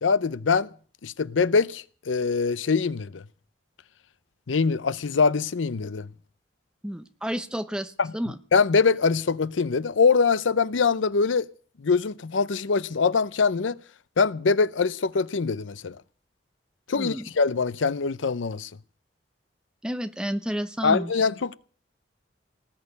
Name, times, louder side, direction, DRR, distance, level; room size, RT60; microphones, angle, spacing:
voice 1, 0.0-0.7 1.0-3.2 4.5-6.1 8.0-8.1 8.5-11.5 11.8-13.8 14.2-16.0 16.9-18.7 20.8-21.6, left 5 dB, 90° left, 0.6 m, -23 dB
voice 2, 6.8-8.4 17.0-17.3 19.8-21.1, equal, 5° right, 0.8 m, -31 dB
19.5 x 6.6 x 9.5 m
head